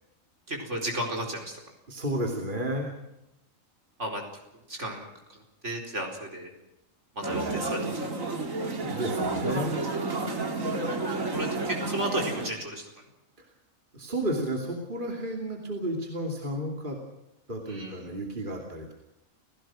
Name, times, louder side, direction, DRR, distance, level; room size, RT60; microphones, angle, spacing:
voice 1, 0.5-1.6 4.0-4.2 4.7-6.5 7.1-8.1 11.3-12.9 17.7-18.1, right 1 dB, 60° right, 1 dB, 4.9 m, -34 dB
voice 2, 1.9-2.9 7.3-7.7 8.8-9.9 13.4-13.5 13.9-17.0 17.5-18.9, right 1 dB, 40° right, 1 dB, 3.0 m, -32 dB
sound 1, 7.2-12.5, right 3 dB, 75° right, 2.8 m, -31 dB
29.5 x 16.5 x 6.3 m, 0.92 s
omnidirectional pair, 1.4 m